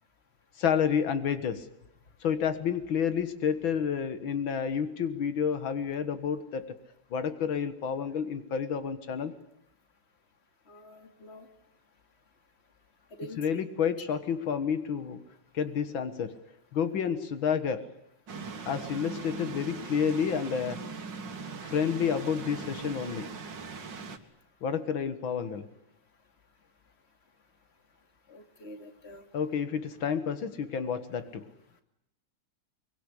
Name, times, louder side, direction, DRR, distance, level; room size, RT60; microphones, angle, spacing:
voice 1, 0.6-1.7 2.2-6.8 7.1-9.4 13.4-15.2 15.5-16.4 16.7-17.9 18.7-20.8 21.6-23.3 24.6-25.6 29.3-31.5, left 7 dB, 85° left, 11 dB, 2.3 m, -30 dB
voice 2, 10.7-11.5 13.2-13.4 28.3-29.2, equal, 30° left, 6 dB, 3.0 m, -46 dB
sound 1, 18.3-24.2, right 4 dB, 65° right, 2.5 m, -40 dB
24.5 x 23.5 x 10.0 m, 0.79 s
omnidirectional pair, 2.1 m